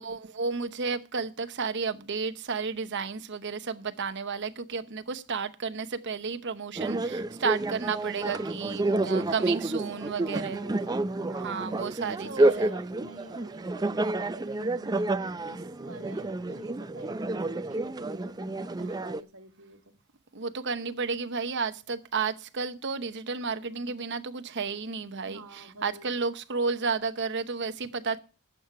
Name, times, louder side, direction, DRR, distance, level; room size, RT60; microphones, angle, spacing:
voice 1, 0.0-10.6 11.4-12.7 18.8-18.9 20.3-28.2, right 5 dB, 55° right, 0.9 m, -32 dB
sound 1, 6.8-19.2, right 2 dB, 20° right, 0.4 m, -29 dB
voice 2, 8.2-11.6 12.0-19.9 23.7-24.0 25.2-26.1, right 2 dB, 70° right, 1.7 m, -47 dB
11.5 x 7.5 x 5.7 m
head